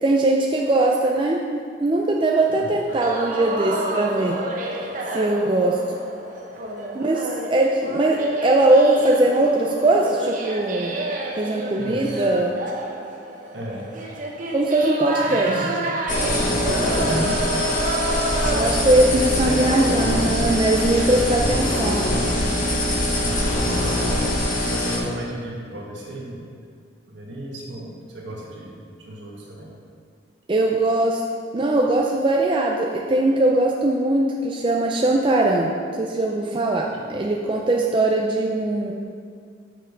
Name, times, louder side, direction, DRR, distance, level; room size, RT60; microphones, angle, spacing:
voice 1, 0.0-1.4 1.8-4.4 5.1-6.0 6.9-11.0 11.4-12.6 14.5-15.6 18.5-22.1 30.5-31.2 31.5-35.7 36.0-38.9, right 2 dB, 25° right, -1 dB, 0.4 m, -20 dB
sound 1, 2.9-18.9, right 1 dB, 40° right, 0.8 m, -29 dB
voice 2, 11.8-12.3 13.5-14.1 15.2-15.7 17.0-17.4 19.1-20.5 23.1-23.5 24.7-26.5 27.1-29.7, right 1 dB, 65° right, -3 dB, 1.7 m, -34 dB
sound 2, 16.1-25.0, left 1 dB, 40° left, 1.2 m, -23 dB
6.5 x 6.3 x 5.2 m, 2.2 s
head